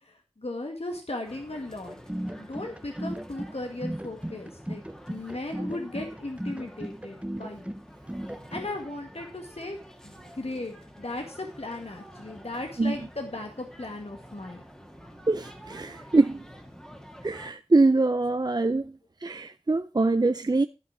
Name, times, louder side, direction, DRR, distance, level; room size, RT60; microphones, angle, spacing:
voice 1, 0.0-2.0 2.3-4.8 5.1-7.7 8.5-9.8 10.0-14.6, left 2 dB, 70° left, 1.9 m, -37 dB
sound 1, 1.2-17.5, equal, 5° left, 1.9 m, -49 dB
sound 2, 1.9-8.7, right 1 dB, 10° right, 0.8 m, -36 dB
voice 2, 15.3-16.5 17.2-20.7, right 3 dB, 40° right, 0.5 m, -24 dB
12.5 x 5.5 x 6.1 m
wide cardioid pair, 45°, 11 cm